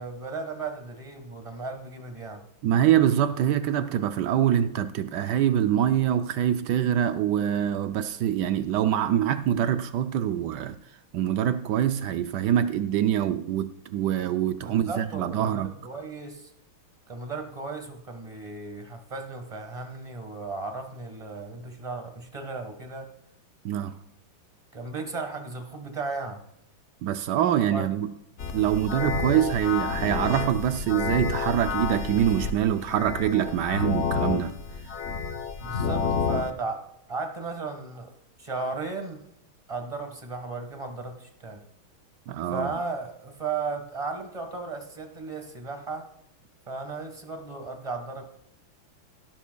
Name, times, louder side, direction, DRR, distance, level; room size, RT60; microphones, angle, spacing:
voice 1, 0.0-2.4 14.6-16.5 17.1-23.1 24.7-26.4 27.7-27.9 35.6-39.2 39.7-41.6 42.5-46.1 46.7-48.2, right 3 dB, 20° right, 1.2 m, -35 dB
voice 2, 2.6-10.8 11.1-15.7 23.6-24.0 27.0-28.1 28.5-34.5 35.6-35.7 42.3-42.7, right 10 dB, 75° right, 1.0 m, -25 dB
sound 1, 28.4-36.5, left 5 dB, 80° left, 0.6 m, -30 dB
16.0 x 12.0 x 2.3 m
omnidirectional pair, 2.3 m